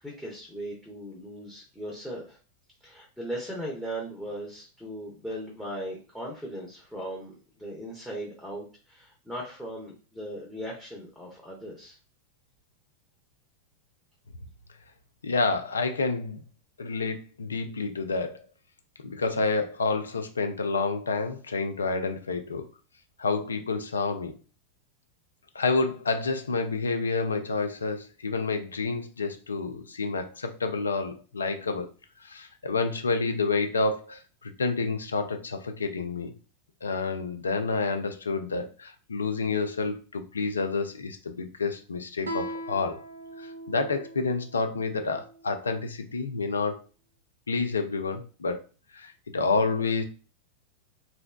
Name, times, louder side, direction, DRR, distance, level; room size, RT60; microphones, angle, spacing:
voice 1, 0.0-2.4 2.8-7.3 7.6-12.0, right 1 dB, ahead, -3 dB, 0.7 m, -38 dB
voice 2, 15.2-16.4 16.8-18.4 19.0-22.6 23.2-24.3 25.6-31.9 32.2-36.3 36.8-43.0 43.4-46.8 47.5-48.7 48.9-50.0, left 4 dB, 75° left, 6 dB, 0.3 m, -29 dB
Guitar, 42.2-45.5, equal, 75° right, 0.3 m, -40 dB
2.6 x 2.1 x 2.2 m, 0.36 s
figure-of-eight pair, 90°, 0 cm